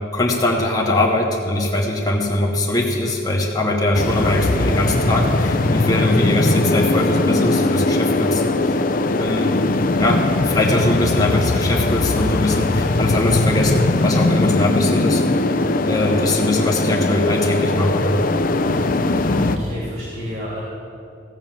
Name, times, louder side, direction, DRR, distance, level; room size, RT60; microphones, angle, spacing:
voice 1, 0.1-8.8 9.1-9.6 10.0-15.2 15.9-18.1, left 1 dB, 20° left, -1 dB, 1.0 m, -21 dB
sound 1, 3.9-19.6, left 2 dB, 45° left, 0.5 m, -20 dB
voice 2, 16.1-16.4 19.3-20.6, left 1 dB, 50° right, -4 dB, 2.2 m, -30 dB
15.0 x 6.1 x 7.5 m, 2.4 s
head